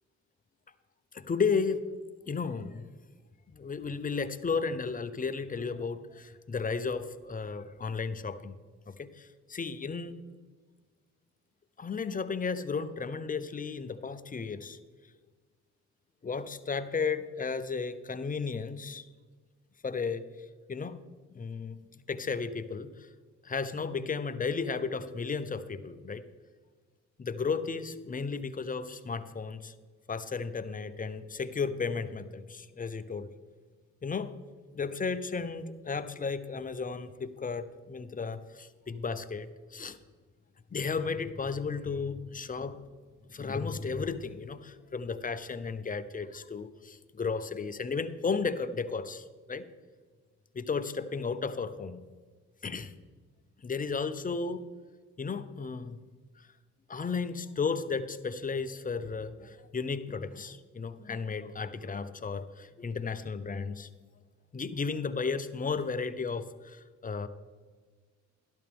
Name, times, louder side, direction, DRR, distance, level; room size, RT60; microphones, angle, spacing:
voice 1, 1.1-1.8 2.3-2.8 3.5-8.6 8.9-10.1 11.8-14.8 16.2-19.1 19.8-20.2 20.7-21.0 21.3-21.8 22.1-23.1 23.4-26.2 27.2-29.7 30.1-33.3 34.0-34.3 34.7-40.0 40.7-42.8 43.3-49.6 50.5-52.0 52.6-52.9 53.6-54.6 55.2-56.0 56.9-63.9 64.5-67.3, left 5 dB, 25° left, 11 dB, 0.7 m, -34 dB
12.5 x 12.0 x 3.5 m, 1.5 s
cardioid pair, 90°, 30 cm